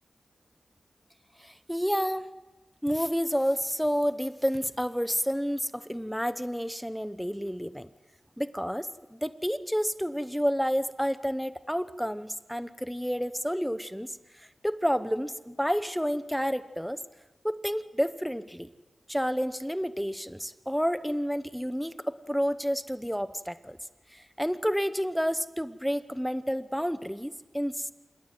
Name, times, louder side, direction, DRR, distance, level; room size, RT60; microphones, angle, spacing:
voice 1, 1.4-2.3 2.8-7.9 8.4-14.1 14.4-17.0 17.4-18.7 19.1-23.8 24.1-27.9, equal, ahead, 12 dB, 0.9 m, -30 dB
27.5 x 16.0 x 9.3 m, 1.2 s
wide cardioid pair, 65°, 0 cm